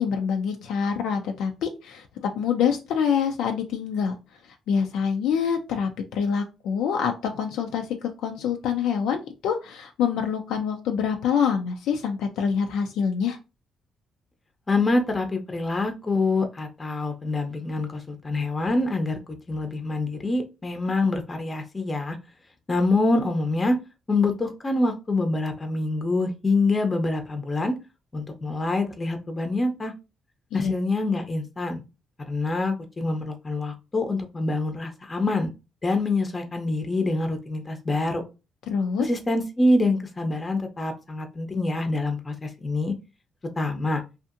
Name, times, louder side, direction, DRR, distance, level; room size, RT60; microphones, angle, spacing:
voice 1, 0.0-4.1 4.7-7.9 8.2-13.4 30.5-30.7 38.7-39.1, left 7 dB, 85° left, 4 dB, 0.3 m, -26 dB
voice 2, 14.7-19.2 19.5-22.2 22.7-23.8 24.1-27.7 28.1-29.9 30.5-31.8 32.3-35.5 35.8-38.2 39.0-42.9 43.6-44.0, left 2 dB, 25° left, 6 dB, 0.6 m, -25 dB
2.6 x 2.4 x 2.5 m, 0.28 s
cardioid pair, 90°, 0 cm